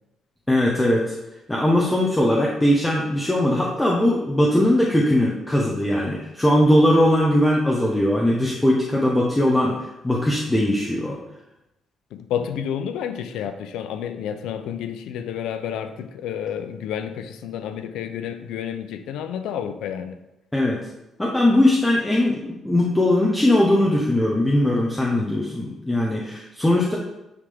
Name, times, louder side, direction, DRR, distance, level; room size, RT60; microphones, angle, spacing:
voice 1, 0.5-1.1 1.5-11.2 20.5-20.8 21.2-27.0, left 1 dB, 10° left, -4 dB, 1.0 m, -20 dB
voice 2, 12.1-20.2, left 9 dB, 90° left, 9 dB, 0.5 m, -30 dB
9.7 x 3.6 x 3.6 m, 0.93 s
cardioid pair, 90°, 0 cm